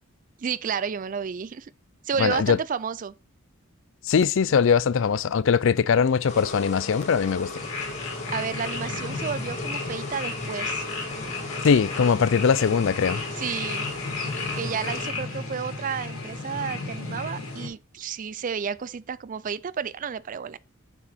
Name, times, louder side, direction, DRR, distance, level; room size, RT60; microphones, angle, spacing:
voice 1, 0.4-1.7 2.0-3.1 8.3-10.8 13.4-13.8 14.5-20.6, right 6 dB, 40° right, 0.4 m, -31 dB
voice 2, 2.2-2.6 4.1-7.5 11.6-13.2, left 6 dB, 60° left, 0.4 m, -21 dB
sound 1, 6.3-15.1, left 3 dB, 35° left, 1.9 m, -37 dB
sound 2, 7.5-17.7, left 3 dB, 80° left, 3.0 m, -33 dB
7.0 x 6.1 x 4.3 m
head